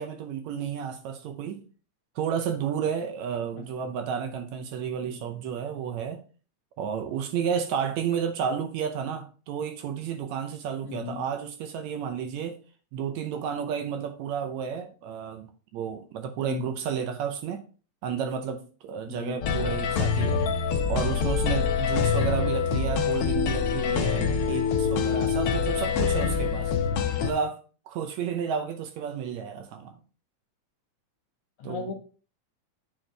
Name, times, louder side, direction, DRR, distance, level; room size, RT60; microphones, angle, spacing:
voice 1, 0.0-1.6 2.2-6.2 6.8-12.6 12.9-17.6 18.0-20.4 20.9-26.7 27.2-27.6 27.9-30.0 31.6-31.9, right 7 dB, 75° right, 1.9 m, -31 dB
voice 2, 10.8-11.2 16.4-16.7 19.1-19.4 31.6-31.9, left 7 dB, 60° left, 2.5 m, -36 dB
sound 1, 19.4-27.3, left 6 dB, 85° left, 1.3 m, -25 dB
8.7 x 4.4 x 3.3 m
omnidirectional pair, 3.5 m